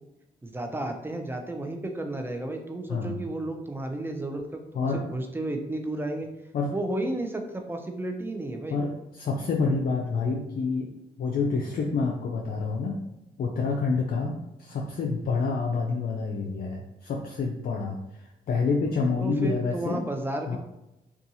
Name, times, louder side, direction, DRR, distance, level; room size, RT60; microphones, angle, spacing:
voice 1, 0.4-4.4 4.7-6.3 6.7-8.8 19.2-20.6, right 1 dB, 10° right, 4 dB, 0.5 m, -32 dB
voice 2, 8.7-10.9 11.2-13.0 13.4-20.0 20.5-20.6, left 4 dB, 55° left, -1 dB, 0.4 m, -28 dB
2.6 x 2.3 x 2.7 m, 0.91 s
supercardioid pair, 50°, 18 cm